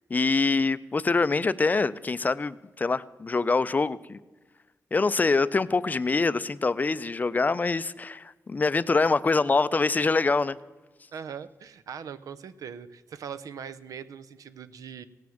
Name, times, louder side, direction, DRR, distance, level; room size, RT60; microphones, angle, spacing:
voice 1, 0.1-4.2 4.9-10.6, left 3 dB, 30° left, 16 dB, 0.4 m, -25 dB
voice 2, 11.1-15.0, right 7 dB, 85° right, 13 dB, 0.5 m, -40 dB
17.0 x 6.1 x 7.1 m, 1.2 s
wide cardioid pair, 105°, 6 cm